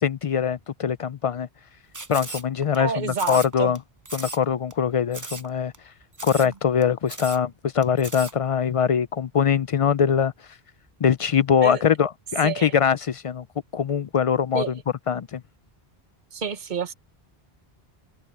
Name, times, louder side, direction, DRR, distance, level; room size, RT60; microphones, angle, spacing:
voice 1, 0.0-1.5 2.1-3.8 4.1-5.7 6.2-10.3 11.0-13.5 13.7-14.8 15.1-15.4, left 7 dB, 55° left, 0.4 m, -22 dB
sound 1, 1.9-2.8 3.1-3.8 4.0-4.4 4.7-4.8 5.1-5.5 5.7-5.8 6.1-6.5 6.8-6.9 7.1-7.4 7.8-8.3, right 3 dB, 20° right, 0.7 m, -36 dB
voice 2, 2.7-3.7 6.4-6.5 11.6-11.8 12.4-12.7 14.5-14.7 16.3-16.9, right 6 dB, 50° right, 1.2 m, -29 dB
omnidirectional pair, 1.0 m